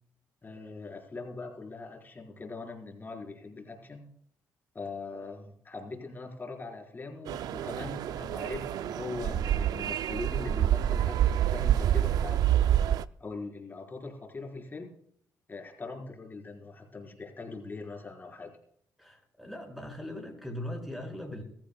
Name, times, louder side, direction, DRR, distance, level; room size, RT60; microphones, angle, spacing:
voice 1, 0.4-4.1 4.7-12.5 13.2-14.9 15.5-18.6, left 3 dB, 30° left, 1 dB, 4.5 m, -41 dB
sound 1, 7.3-13.1, right 11 dB, 80° right, 0.4 m, -27 dB
voice 2, 19.0-21.4, left 1 dB, ahead, 2 dB, 6.1 m, -39 dB
22.5 x 14.0 x 2.3 m, 0.67 s
cardioid pair, 85°, 7 cm